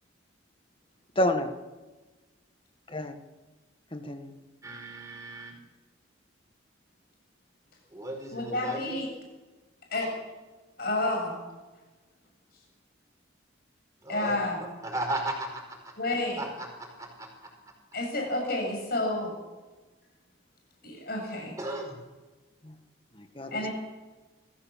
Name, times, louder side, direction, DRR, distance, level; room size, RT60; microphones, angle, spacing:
voice 1, 1.2-1.5 2.9-3.2 3.9-4.3 22.6-22.7 23.2-23.7, left 1 dB, 25° left, 7 dB, 1.7 m, -29 dB
voice 2, 4.6-5.5 7.9-9.0 14.0-14.4 14.8-15.9 16.4-17.5 21.6-22.0 23.5-23.7, right 1 dB, 15° right, 1 dB, 5.3 m, -36 dB
voice 3, 8.3-9.1 9.9-10.1 10.8-11.4 14.1-14.6 16.0-16.4 17.9-19.3 20.8-21.6 23.5-23.7, left 2 dB, 50° left, 1 dB, 7.2 m, -30 dB
23.0 x 15.5 x 7.5 m, 1.2 s
head